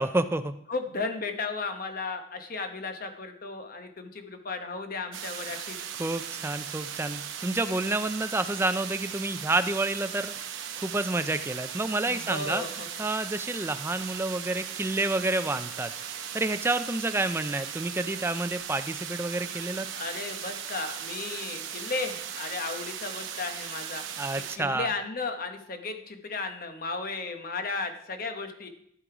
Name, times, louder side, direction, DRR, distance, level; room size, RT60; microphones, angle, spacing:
voice 1, 0.0-0.5 5.5-5.6 6.0-10.3 10.8-12.6 13.0-15.9 16.3-19.9 24.2-24.9, right 2 dB, 15° right, 10 dB, 0.4 m, -29 dB
voice 2, 0.7-5.8 12.0-13.1 19.9-24.0 24.6-28.7, left 3 dB, 50° left, 6 dB, 1.0 m, -34 dB
sound 1, 5.1-24.6, right 8 dB, 90° right, 0.9 m, -38 dB
13.0 x 5.3 x 4.9 m, 0.71 s
head